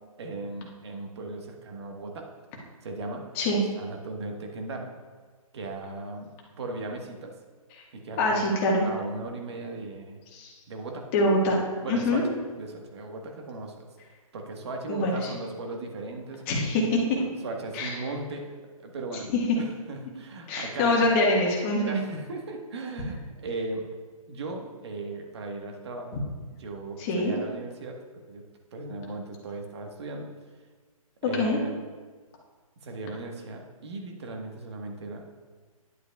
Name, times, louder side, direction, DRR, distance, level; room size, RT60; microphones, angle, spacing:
voice 1, 0.2-2.3 2.8-3.2 3.8-4.9 5.5-6.3 6.6-7.3 7.9-10.2 10.7-11.0 11.8-13.9 14.3-16.4 17.2-18.4 18.8-21.0 21.8-23.9 24.3-26.2 26.6-28.0 28.3-28.4 28.7-30.3 31.2-31.8 32.8-35.2, right 2 dB, 45° right, 3 dB, 1.3 m, -37 dB
voice 2, 8.2-8.9 10.3-10.5 11.1-11.6 11.9-12.2 14.9-15.3 16.5-17.2 17.7-18.0 20.5-22.0 26.1-26.2 27.0-27.3 31.3-31.6, left 1 dB, 25° left, -2 dB, 1.5 m, -24 dB
11.0 x 7.8 x 2.3 m, 1.4 s
hypercardioid pair, 150°, 19 cm